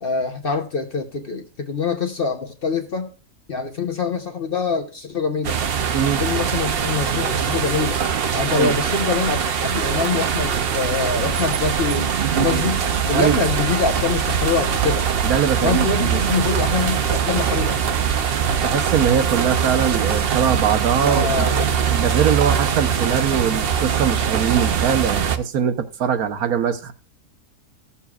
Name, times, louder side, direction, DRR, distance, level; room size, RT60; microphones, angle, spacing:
voice 1, 0.0-3.1 3.5-5.6 6.2-8.0 8.3-15.1 15.6-17.8 21.0-21.6, left 4 dB, 45° left, 0.9 m, -24 dB
sound 1, 5.4-25.4, right 7 dB, 55° right, 0.7 m, -22 dB
voice 2, 5.9-6.2 8.5-8.7 13.1-13.4 15.2-16.2 18.6-26.9, right 8 dB, 75° right, 1.3 m, -22 dB
15.5 x 7.0 x 2.3 m
omnidirectional pair, 1.6 m